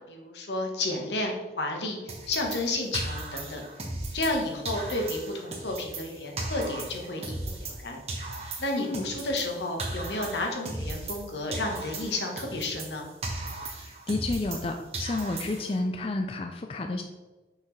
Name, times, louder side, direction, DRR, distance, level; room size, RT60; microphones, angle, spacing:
voice 1, 0.1-3.6 4.1-8.0 8.6-13.1, left 2 dB, 85° left, 1 dB, 1.3 m, -31 dB
sound 1, 2.1-4.4 4.7-7.8 8.1-11.3 11.5-14.7 14.9-15.8, right 2 dB, 35° right, 1.2 m, -37 dB
voice 2, 13.6-17.0, left 2 dB, 30° left, 4 dB, 0.4 m, -31 dB
6.5 x 5.9 x 3.2 m, 1.2 s
head